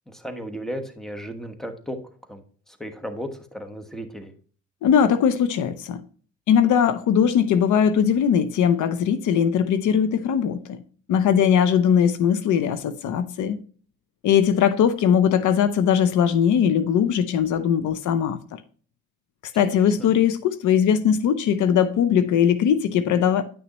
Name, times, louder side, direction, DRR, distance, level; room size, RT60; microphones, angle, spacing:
voice 1, 0.1-2.0 2.3-4.3 19.6-20.1, equal, ahead, 1.2 m, -35 dB
voice 2, 4.8-6.0 6.5-10.8 11.1-13.6 14.2-18.6 19.5-23.4, left 8 dB, 75° left, 0.7 m, -20 dB
10.0 x 6.1 x 3.0 m
cardioid pair, 90°, 30 cm